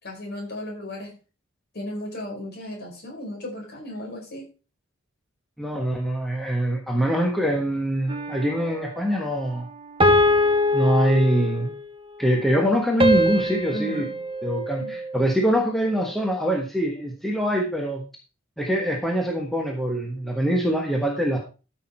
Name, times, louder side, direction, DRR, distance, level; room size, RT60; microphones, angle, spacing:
voice 1, 0.0-1.1 1.7-4.4 13.7-14.2 14.8-15.0, left 1 dB, 50° left, -1 dB, 4.8 m, -35 dB
voice 2, 5.6-9.7 10.7-11.7 12.2-14.0 14.4-18.0 18.6-21.4, equal, ahead, 1 dB, 1.3 m, -24 dB
sound 1, 8.1-8.8 10.0-11.8 13.0-15.4, left 1 dB, 25° right, 1.1 m, -23 dB
13.0 x 6.1 x 4.4 m, 0.33 s
head